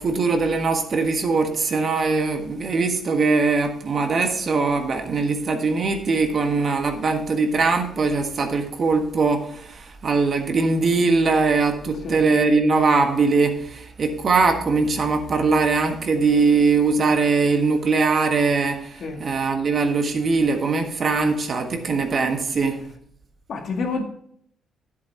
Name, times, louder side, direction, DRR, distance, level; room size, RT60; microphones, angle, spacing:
voice 1, 0.0-22.8, right 4 dB, 45° right, 5 dB, 1.5 m, -21 dB
voice 2, 23.5-24.0, left 4 dB, 60° left, 3 dB, 2.0 m, -28 dB
10.5 x 8.3 x 4.5 m, 0.65 s
cardioid pair, 90°, 0 cm